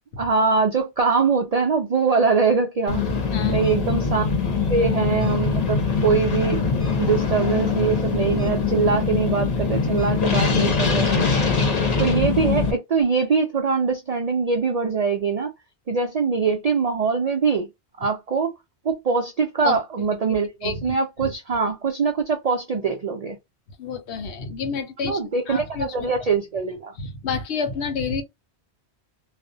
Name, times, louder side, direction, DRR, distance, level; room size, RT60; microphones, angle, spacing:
voice 1, 0.2-3.0 3.5-4.2 4.7-6.7 7.0-11.3 12.0-15.5 15.9-17.7 18.0-18.5 18.8-23.4 25.0-26.9, right 5 dB, 65° right, 0.3 m, -23 dB
sound 1, 2.9-12.7, left 5 dB, 40° left, 0.7 m, -22 dB
voice 2, 3.3-3.6 19.6-20.1 20.6-21.3 23.8-25.2 25.5-26.1 27.0-28.2, left 5 dB, 75° left, 0.9 m, -29 dB
2.4 x 2.0 x 2.6 m
omnidirectional pair, 1.1 m